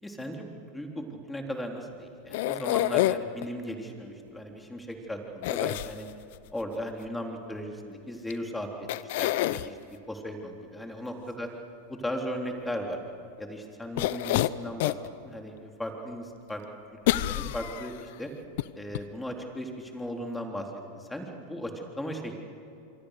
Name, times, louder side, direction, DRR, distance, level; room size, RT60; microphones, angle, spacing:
voice 1, 0.0-6.1 6.5-8.7 9.2-11.5 11.9-13.0 13.4-15.0 15.2-16.6 16.9-18.3 18.8-20.7 20.9-22.5, equal, 5° left, 2 dB, 3.6 m, -37 dB
sound 1, 2.3-3.5 5.4-6.4 8.3-8.4 8.9-9.7 14.0-15.1 15.6-15.7 17.1-18.0 18.6-18.7 18.9-19.0, left 16 dB, 65° left, 0.7 m, -27 dB
26.0 x 23.5 x 6.7 m, 2.6 s
hypercardioid pair, 100°, 0 cm